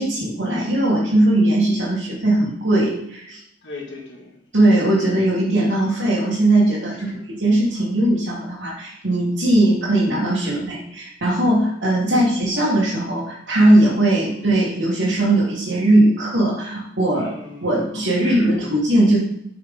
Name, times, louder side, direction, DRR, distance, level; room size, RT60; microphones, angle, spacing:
voice 1, 0.0-3.4 4.5-17.3 17.6-19.2, right 1 dB, 85° right, -7 dB, 1.6 m, -19 dB
voice 2, 3.6-4.4 5.9-6.0 6.9-7.2 7.7-7.9 10.4-10.7 12.1-12.3 14.2-14.4 17.1-17.7 18.2-18.6, left 2 dB, 70° left, -1 dB, 1.8 m, -39 dB
7.4 x 4.7 x 3.7 m, 0.76 s
head